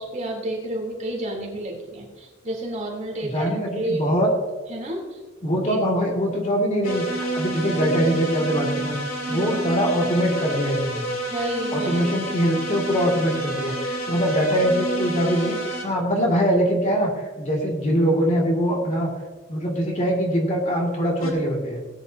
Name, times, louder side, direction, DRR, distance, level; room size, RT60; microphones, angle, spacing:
voice 1, 0.0-4.2 4.7-5.2 5.7-5.8 9.3-9.4 11.3-12.0 14.1-14.2, right 1 dB, 35° right, -2 dB, 3.2 m, -30 dB
voice 2, 3.2-4.3 5.4-9.0 9.3-11.0 11.7-19.1 19.5-21.8, equal, 35° left, -1 dB, 2.2 m, -23 dB
sound 1, 6.8-15.9 21.2-21.3, right 2 dB, 85° left, 2.3 m, -29 dB
17.5 x 10.0 x 2.8 m, 1.3 s
head